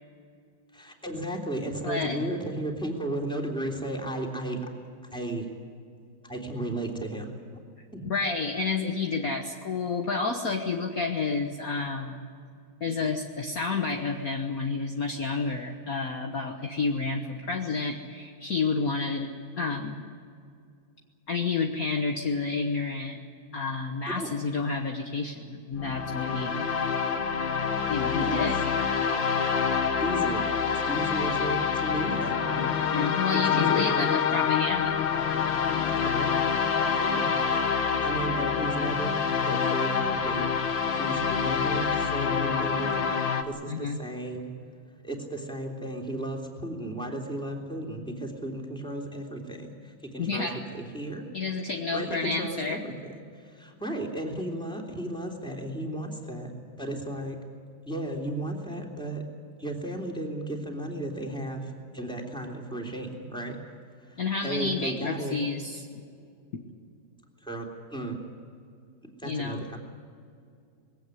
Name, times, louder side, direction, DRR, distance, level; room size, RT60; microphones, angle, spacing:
voice 1, 0.7-4.6 5.1-5.5 6.2-7.3 7.9-8.1 24.1-24.3 28.2-28.4 30.0-32.7 33.5-34.4 36.0-36.5 37.0-37.4 38.0-40.5 40.9-43.2 43.5-44.5 45.0-51.3 51.9-52.9 53.4-56.5 56.8-57.4 57.9-59.2 59.6-63.6 64.1-65.4 67.4-68.2 69.2-69.8, right 1 dB, ahead, 0 dB, 3.2 m, -34 dB
voice 2, 1.8-2.2 8.0-12.2 12.8-19.3 19.6-20.0 21.3-23.2 23.5-26.7 27.9-28.6 32.7-35.0 43.7-44.0 50.2-50.6 51.3-52.8 64.2-65.9 69.2-69.6, left 4 dB, 45° left, 2 dB, 1.6 m, -30 dB
sound 1, 25.7-43.4, left 6 dB, 65° left, 2.0 m, -26 dB
21.5 x 17.5 x 9.8 m, 2.3 s
omnidirectional pair, 2.3 m